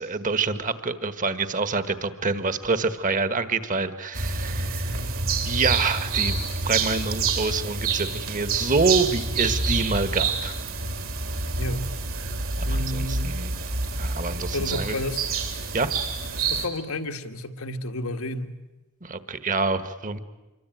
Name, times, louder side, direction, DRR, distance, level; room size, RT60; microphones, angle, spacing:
voice 1, 0.0-5.0 5.4-10.5 12.6-13.5 14.0-15.0 15.7-15.9 19.0-20.2, right 3 dB, 40° right, 12 dB, 1.5 m, -27 dB
sound 1, 4.1-16.7, right 4 dB, 70° right, 3.8 m, -27 dB
voice 2, 11.6-11.9 12.7-13.4 14.5-15.3 16.5-18.6, left 1 dB, 85° left, 6 dB, 1.8 m, -31 dB
27.0 x 23.5 x 9.2 m, 1.1 s
head